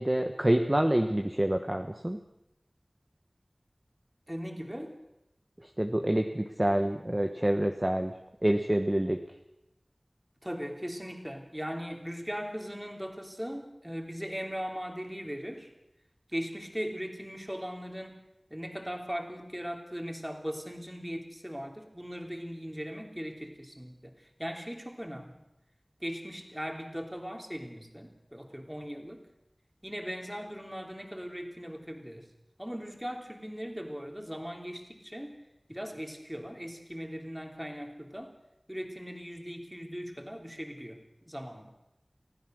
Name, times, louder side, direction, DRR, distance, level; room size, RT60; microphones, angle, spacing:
voice 1, 0.0-2.2 5.6-8.1 8.4-9.2, right 1 dB, 25° right, 4 dB, 1.3 m, -27 dB
voice 2, 4.3-4.9 10.4-15.7 16.3-18.2 18.5-25.4 26.0-29.2 29.8-32.3 32.6-35.4 35.7-38.3 38.7-41.7, equal, 10° right, 3 dB, 3.2 m, -39 dB
25.5 x 16.0 x 6.4 m, 0.89 s
wide cardioid pair, 45°, 0 cm